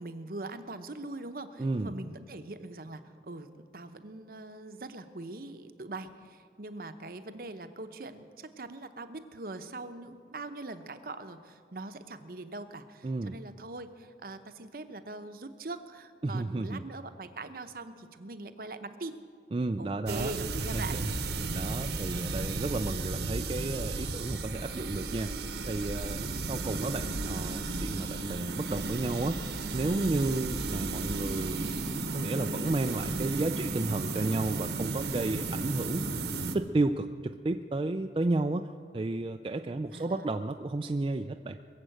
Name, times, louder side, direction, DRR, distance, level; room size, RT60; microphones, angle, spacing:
voice 1, 0.0-19.2 19.8-21.0 39.9-40.3, right 2 dB, 55° right, 9 dB, 0.8 m, -42 dB
voice 2, 1.6-1.9 13.0-13.3 16.2-16.8 19.5-20.3 20.6-21.1 21.5-25.3 25.7-29.4 29.7-36.1 36.5-38.7 38.9-41.6, right 2 dB, 30° right, 6 dB, 0.3 m, -32 dB
sound 1, 20.1-36.5, right 3 dB, 70° right, 1.1 m, -34 dB
21.5 x 7.5 x 7.8 m, 2.2 s
head